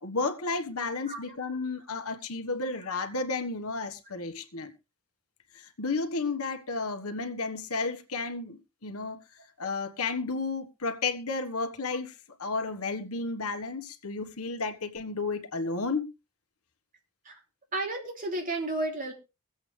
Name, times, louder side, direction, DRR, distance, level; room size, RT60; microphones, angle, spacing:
voice 1, 0.0-4.7 5.5-9.2 9.6-16.1, left 3 dB, 70° left, 1.4 m, -32 dB
voice 2, 17.7-19.1, right 2 dB, 40° right, 3.1 m, -32 dB
23.0 x 8.0 x 3.3 m
head